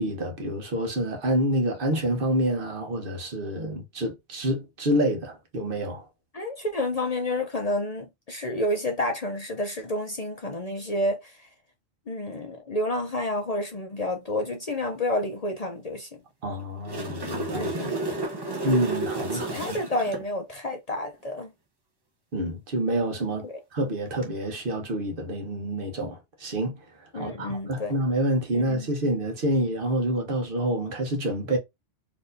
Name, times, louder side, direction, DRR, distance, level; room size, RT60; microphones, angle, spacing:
voice 1, 0.0-6.1 16.4-17.7 18.6-19.8 22.3-26.8 27.1-31.6, right 1 dB, 50° right, 1.2 m, -27 dB
voice 2, 6.3-11.3 12.1-16.1 17.5-18.0 19.3-21.5 23.4-23.6 27.1-28.0 28.5-28.9, left 1 dB, 45° left, 0.6 m, -30 dB
sound 1, 16.6-20.2 24.1-24.2, right 2 dB, 25° right, 0.6 m, -31 dB
4.3 x 3.1 x 2.6 m
omnidirectional pair, 1.3 m